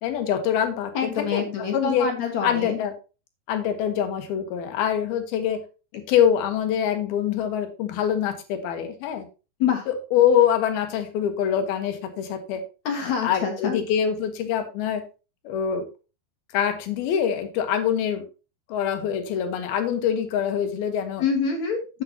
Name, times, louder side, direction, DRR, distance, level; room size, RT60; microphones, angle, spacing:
voice 1, 0.0-1.5 1.7-2.1 2.4-2.9 3.5-5.6 5.9-9.3 9.9-12.6 13.0-15.0 15.4-15.9 16.5-18.2 18.7-21.2, left 9 dB, 75° left, 7 dB, 3.1 m, -24 dB
voice 2, 0.9-2.8 9.6-9.9 12.9-13.8 21.2-22.0, left 6 dB, 55° left, 3 dB, 2.4 m, -26 dB
10.0 x 8.6 x 2.9 m, 0.32 s
omnidirectional pair, 4.6 m